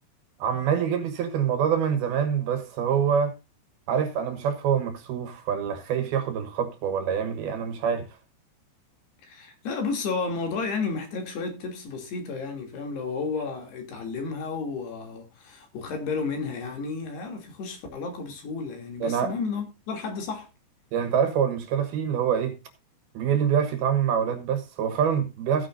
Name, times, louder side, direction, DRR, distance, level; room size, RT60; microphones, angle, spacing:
voice 1, 0.4-3.3 3.9-8.1 19.0-19.3 20.9-22.6 23.1-25.7, right 8 dB, 65° right, 2.9 m, -25 dB
voice 2, 9.2-20.5, left 4 dB, 65° left, 4.7 m, -32 dB
16.0 x 9.6 x 2.6 m
omnidirectional pair, 5.2 m